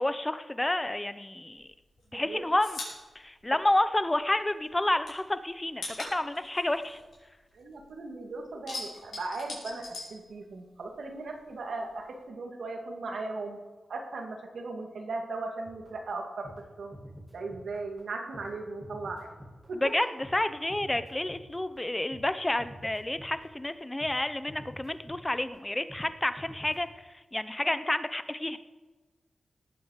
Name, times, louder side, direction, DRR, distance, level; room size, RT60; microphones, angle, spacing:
voice 1, 0.0-1.7 2.1-2.8 3.1-7.0 19.7-28.6, left 1 dB, 20° left, 12 dB, 0.9 m, -30 dB
sound 1, 1.6-4.4 4.6-7.9 8.2-10.9 11.1-12.2, left 2 dB, 70° left, 5.4 m, -42 dB
voice 2, 2.1-2.4 7.5-13.6 13.9-16.5 16.8-16.9 17.3-19.3 19.7-19.8, right 3 dB, 75° right, 2 dB, 2.4 m, -37 dB
sound 2, 15.7-22.3 22.6-23.7 24.0-24.2 24.5-25.6 25.9-26.1 26.4-26.8, equal, 5° right, 3.0 m, -48 dB
18.5 x 8.5 x 6.6 m, 1.2 s
cardioid pair, 75°, 0 cm